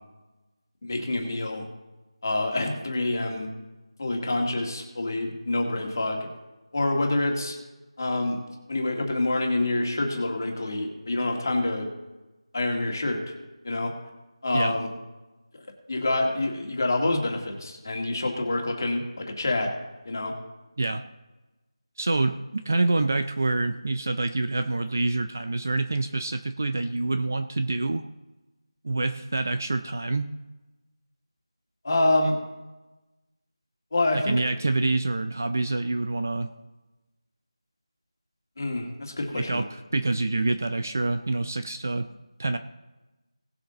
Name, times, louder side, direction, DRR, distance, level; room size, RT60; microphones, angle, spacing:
voice 1, 0.8-1.6 2.2-3.5 4.0-6.3 6.7-7.6 8.0-8.4 8.7-11.9 12.5-13.3 13.6-13.9 14.4-14.9 15.5-19.7 20.1-20.3 31.8-32.4 33.9-34.3 38.6-39.6, left 2 dB, 35° left, 1 dB, 2.0 m, -27 dB
voice 2, 22.0-28.0 28.8-30.3 34.1-36.5 39.3-42.1 42.4-42.6, right 2 dB, 25° right, 9 dB, 0.4 m, -26 dB
18.0 x 7.0 x 3.9 m, 1.1 s
figure-of-eight pair, 175°, 3 cm